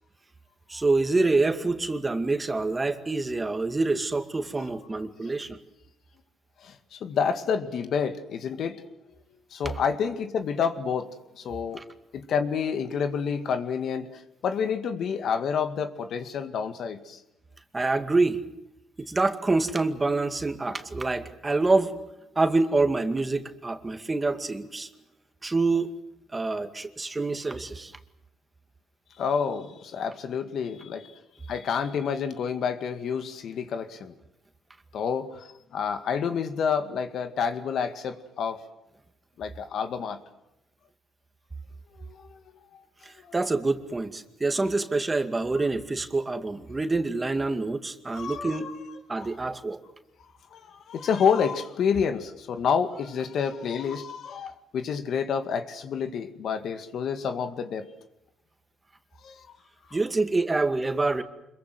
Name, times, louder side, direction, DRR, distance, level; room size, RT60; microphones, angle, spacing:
voice 1, 0.7-5.6 11.7-11.8 17.7-18.4 19.0-22.0 22.4-24.9 25.4-25.9 26.3-27.9 43.0-48.7 49.1-49.8 59.9-61.2, right 3 dB, 20° right, 8 dB, 2.2 m, -26 dB
voice 2, 6.6-8.8 9.5-11.1 11.4-11.8 12.1-17.2 29.2-31.1 31.5-34.1 34.9-38.6 39.4-40.2 42.0-42.2 43.3-43.4 48.1-48.7 49.2-49.3 50.5-57.9 59.2-59.5, left 6 dB, 70° left, 8 dB, 2.2 m, -29 dB
26.0 x 22.5 x 7.9 m, 0.88 s
cardioid pair, 90°, 0 cm